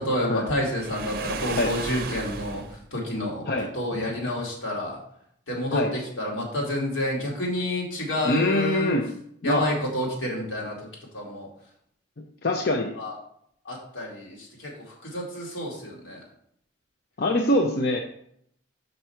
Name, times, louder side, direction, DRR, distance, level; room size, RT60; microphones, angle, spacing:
voice 1, 0.0-2.6 2.9-5.0 5.5-8.9 9.4-10.9 11.1-11.5 13.0-13.1 13.6-16.2, left 1 dB, 85° left, -2 dB, 2.2 m, -29 dB
Waves surf, 0.7-2.8, right 4 dB, 50° right, 0.6 m, -34 dB
voice 2, 8.2-9.0 9.4-9.7 12.4-13.0 17.2-18.0, left 1 dB, 55° left, 3 dB, 0.6 m, -23 dB
5.3 x 4.5 x 5.6 m, 0.69 s
head